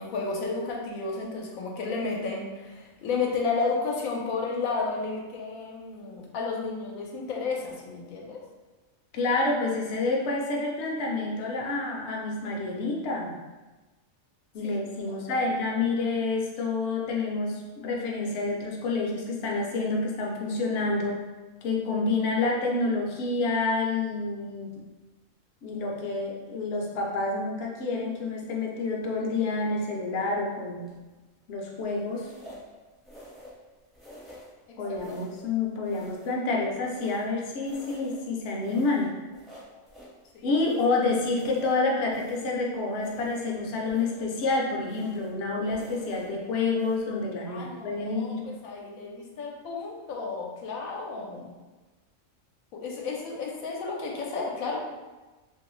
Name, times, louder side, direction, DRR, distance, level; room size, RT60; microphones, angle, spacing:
voice 1, 0.0-8.4 14.6-14.8 15.1-15.4 34.7-35.2 40.3-40.5 47.5-51.5 52.7-54.8, left 4 dB, 90° left, -1 dB, 1.0 m, -32 dB
voice 2, 9.1-13.3 14.5-21.2 21.6-24.8 25.6-30.8 31.5-32.3 34.8-39.1 40.4-48.5, left 3 dB, 65° left, -2 dB, 0.8 m, -28 dB
sound 1, 30.9-31.2 32.1-32.7 33.0-33.6 33.9-34.6 34.9-35.5 35.8-37.3 37.6-38.3 38.6-40.2 40.6-42.6 42.9-43.6 43.9-44.4 44.8-45.4 45.7-46.3 46.7-47.0, equal, ahead, 0.5 m, -49 dB
2.9 x 2.7 x 3.0 m, 1.2 s
omnidirectional pair, 1.4 m